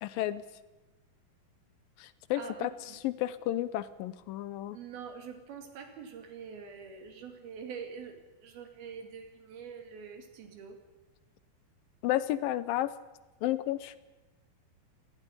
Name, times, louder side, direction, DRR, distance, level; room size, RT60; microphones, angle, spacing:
voice 1, 0.0-0.4 2.0-4.8 12.0-12.9 13.4-14.0, left 14 dB, 80° left, 15 dB, 2.5 m, -32 dB
voice 2, 2.4-2.7 4.7-8.1 8.4-10.8, right 6 dB, 90° right, 5 dB, 4.5 m, -44 dB
18.0 x 15.5 x 10.0 m, 1.1 s
omnidirectional pair, 4.2 m